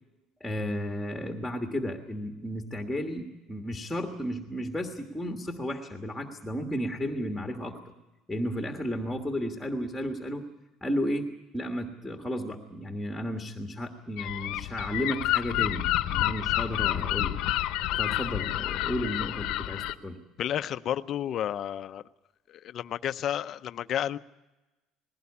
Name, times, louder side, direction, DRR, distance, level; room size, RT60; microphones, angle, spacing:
voice 1, 0.4-7.9 8.3-10.4 10.8-11.3 11.5-17.3 18.0-20.2, equal, ahead, 3 dB, 1.5 m, -33 dB
Gull seagull, 14.2-19.9, left 15 dB, 65° left, 0.9 m, -29 dB
voice 2, 20.4-22.0 22.5-24.2, left 10 dB, 40° left, 12 dB, 0.6 m, -31 dB
20.0 x 17.0 x 8.5 m, 1.1 s
cardioid pair, 160°, 0 cm